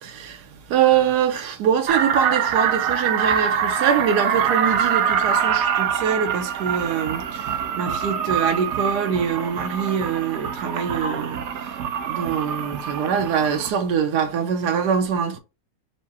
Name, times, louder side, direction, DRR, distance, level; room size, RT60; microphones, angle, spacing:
voice 1, 0.0-11.8 12.1-15.4, right 7 dB, 85° right, 1.3 m, -24 dB
sound 1, 1.9-13.7, right 8 dB, 70° right, 0.7 m, -24 dB
4.8 x 2.2 x 4.1 m
omnidirectional pair, 1.7 m